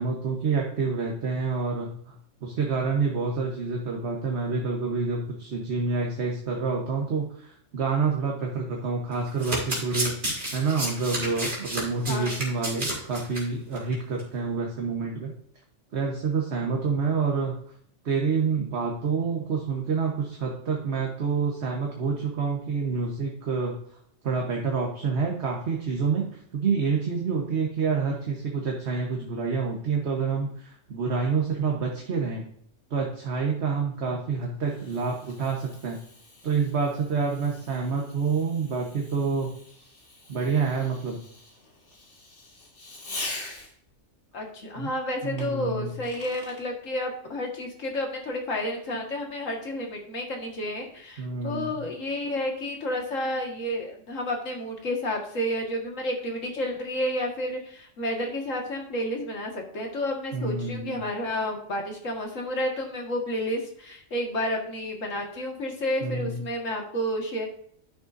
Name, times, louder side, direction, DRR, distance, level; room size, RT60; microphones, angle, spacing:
voice 1, 0.0-15.3 15.9-17.5 18.0-23.8 24.2-32.4 32.9-36.0 36.4-39.5 39.8-39.9 40.3-41.2 44.7-44.9 45.2-46.0 51.2-51.8 60.3-61.0 66.0-66.4, right 5 dB, 60° right, 0 dB, 1.4 m, -28 dB
Domestic sounds home sounds, 9.1-13.4 13.7-13.9 14.2-14.3, right 1 dB, 40° right, 2.9 m, -31 dB
Fireworks, 34.0-44.0 45.4-46.6, left 2 dB, 65° left, 2.3 m, -43 dB
voice 2, 44.3-67.5, left 1 dB, 85° left, 1 dB, 2.1 m, -31 dB
11.0 x 6.7 x 2.6 m, 0.64 s
omnidirectional pair, 1.3 m